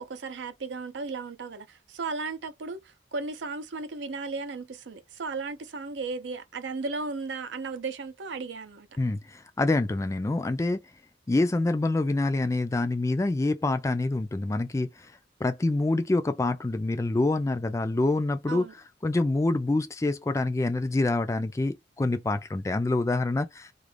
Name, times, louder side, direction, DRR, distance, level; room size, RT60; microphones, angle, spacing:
voice 1, 0.0-8.9 18.5-18.7, right 4 dB, 85° right, 0.5 m, -35 dB
voice 2, 9.0-10.8 11.3-14.9 15.4-18.6 19.0-23.7, left 2 dB, 15° left, 0.3 m, -26 dB
2.4 x 2.1 x 3.2 m
head